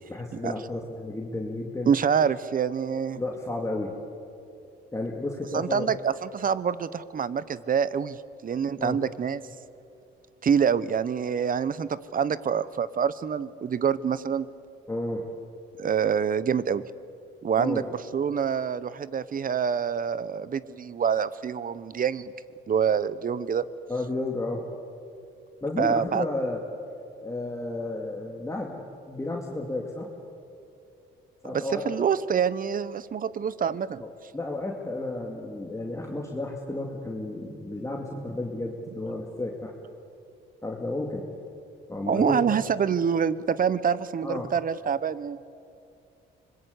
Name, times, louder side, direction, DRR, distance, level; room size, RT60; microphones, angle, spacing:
voice 1, 0.1-1.9 3.2-3.9 4.9-6.0 8.8-9.0 14.9-15.3 17.6-17.9 23.9-24.6 25.6-26.6 27.1-30.1 31.4-31.8 34.0-39.7 40.6-41.3 41.9-42.4 44.2-44.5, left 2 dB, 15° left, 0 dB, 2.5 m, -32 dB
voice 2, 1.9-3.2 5.5-9.4 10.4-14.5 15.8-16.8 17.4-22.3 22.7-23.6 25.8-26.2 31.5-34.0 42.1-45.4, right 7 dB, 45° right, 17 dB, 0.9 m, -26 dB
25.0 x 21.5 x 8.3 m, 2.5 s
cardioid pair, 90°, 20 cm